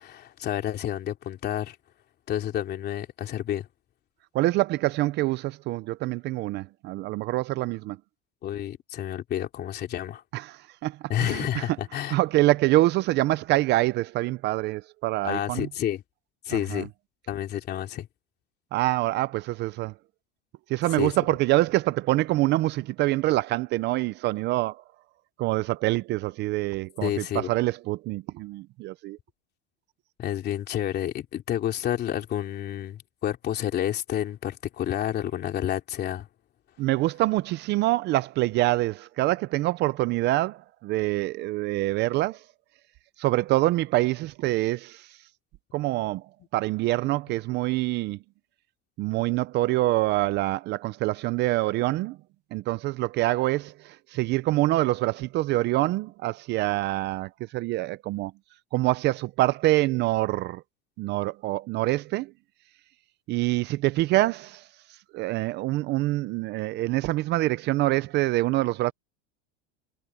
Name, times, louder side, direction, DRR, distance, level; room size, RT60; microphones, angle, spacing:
voice 1, 0.0-1.8 2.3-3.7 8.4-10.2 11.1-12.1 15.2-16.0 16.4-16.9 17.3-18.1 21.0-21.1 27.0-27.5 30.2-36.3, left 11 dB, 30° left, 3.0 m, -30 dB
voice 2, 4.3-8.0 10.3-11.6 12.1-15.7 16.5-16.9 18.7-19.9 20.7-24.8 25.4-29.2 36.8-42.4 43.2-45.2 45.7-46.2 46.5-48.2 49.0-52.2 52.5-58.3 58.7-60.6 61.0-62.3 63.3-64.7 65.1-68.9, right 18 dB, 35° right, 0.4 m, -25 dB
cardioid pair, 165°, 30 cm